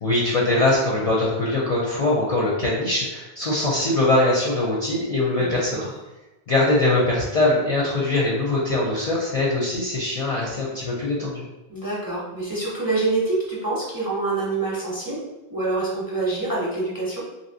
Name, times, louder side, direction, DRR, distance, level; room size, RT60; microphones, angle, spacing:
voice 1, 0.0-5.9 6.5-11.4, left 2 dB, 45° left, -5 dB, 0.5 m, -22 dB
voice 2, 11.7-15.2 15.5-17.2, right 3 dB, 25° right, -5 dB, 0.6 m, -26 dB
2.9 x 2.7 x 2.7 m, 1.1 s
omnidirectional pair, 1.0 m